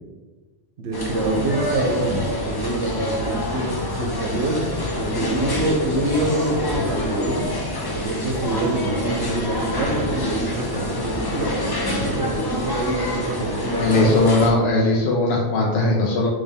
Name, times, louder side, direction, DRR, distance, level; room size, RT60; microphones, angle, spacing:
voice 1, 0.8-4.7 5.0-7.5 7.9-14.2, right 2 dB, 75° right, 2 dB, 1.0 m, -26 dB
sound 1, 0.9-14.5, left 1 dB, 30° left, 0.4 m, -26 dB
voice 2, 13.8-16.3, left 2 dB, 65° left, -2 dB, 0.8 m, -19 dB
4.1 x 3.3 x 3.4 m, 1.3 s
omnidirectional pair, 1.2 m